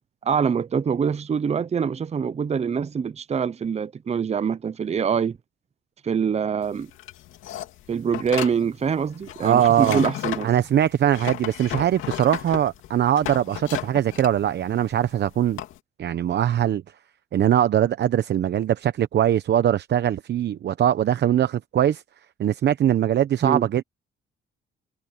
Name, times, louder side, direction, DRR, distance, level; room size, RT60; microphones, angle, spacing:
voice 1, 0.2-5.4 6.0-6.9 7.9-10.5 23.4-23.6, right 6 dB, 35° right, 0.7 m, -24 dB
sound 1, 6.6-15.8, left 13 dB, 90° left, 2.5 m, -34 dB
voice 2, 9.4-10.0 10.4-15.6 16.0-16.8 17.3-22.0 22.4-23.8, right 10 dB, 60° right, 0.8 m, -21 dB
cardioid pair, 90°, 20 cm